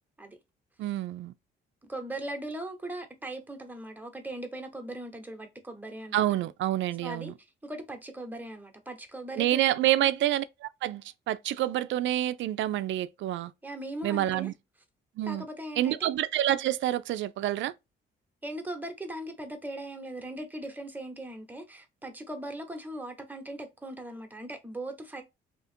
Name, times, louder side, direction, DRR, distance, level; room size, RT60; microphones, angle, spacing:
voice 1, 0.8-1.3 6.1-7.3 9.4-13.5 14.0-14.5 15.2-15.5 15.8-17.7, right 13 dB, 70° right, 0.4 m, -28 dB
voice 2, 1.9-6.5 7.0-7.3 7.6-10.0 13.6-14.5 15.3-16.1 18.4-25.2, right 1 dB, 10° right, 1.0 m, -39 dB
2.9 x 2.4 x 4.3 m
cardioid pair, 90°, 20 cm